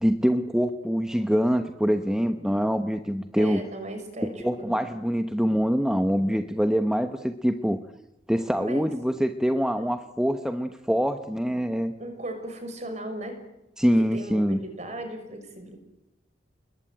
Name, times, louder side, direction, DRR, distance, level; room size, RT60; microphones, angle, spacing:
voice 1, 0.0-3.6 4.2-7.8 8.3-11.9 13.8-14.6, equal, 5° right, 7 dB, 1.0 m, -24 dB
voice 2, 3.4-4.8 8.6-8.9 9.8-9.9 12.0-13.4 14.0-15.8, right 1 dB, 40° right, 7 dB, 6.2 m, -36 dB
30.0 x 21.5 x 9.2 m, 0.94 s
head